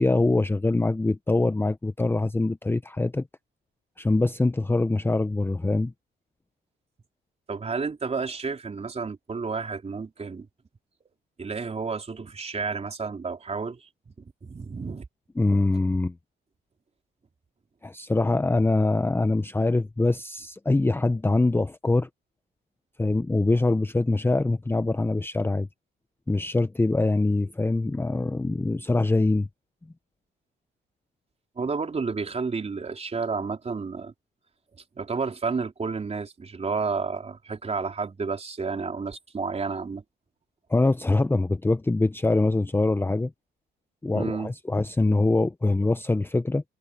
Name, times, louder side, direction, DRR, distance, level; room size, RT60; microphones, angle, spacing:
voice 1, 0.0-3.2 4.0-5.9 15.4-16.1 17.8-22.1 23.0-25.7 26.3-29.5 40.7-43.3 44.0-46.6, left 2 dB, 10° left, 0.7 m, -23 dB
voice 2, 7.5-10.5 11.4-15.1 31.6-34.1 35.0-40.0 44.1-44.5, right 4 dB, 30° right, 4.0 m, -31 dB
cardioid pair, 90°, 20 cm